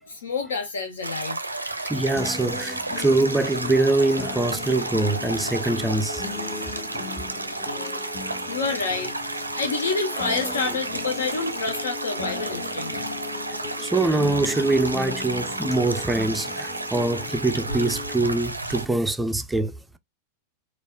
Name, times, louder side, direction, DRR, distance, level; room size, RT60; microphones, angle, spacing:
voice 1, 0.0-1.4 8.5-9.1 9.6-13.0, left 4 dB, 70° left, 0.6 m, -28 dB
sound 1, 1.0-18.9, right 2 dB, 85° right, 0.4 m, -32 dB
voice 2, 1.9-6.2 13.8-19.7, right 2 dB, 10° right, 0.4 m, -23 dB
sound 2, 2.2-18.2, left 5 dB, 25° left, 0.8 m, -37 dB
4.1 x 2.3 x 2.2 m
figure-of-eight pair, 90°, 0 cm